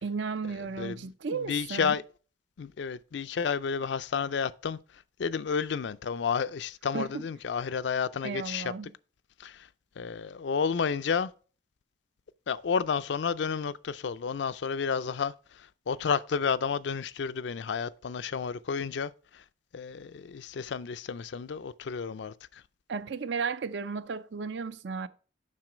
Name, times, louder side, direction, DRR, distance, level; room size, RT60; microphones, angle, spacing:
voice 1, 0.0-2.0 6.9-7.2 8.2-8.9 22.9-25.1, right 5 dB, 70° right, 0.5 m, -34 dB
voice 2, 0.8-2.0 2.6-4.8 5.2-8.7 9.4-9.7 10.0-11.3 12.5-19.4 19.7-22.6, left 6 dB, 70° left, 0.4 m, -31 dB
7.5 x 6.0 x 4.9 m
head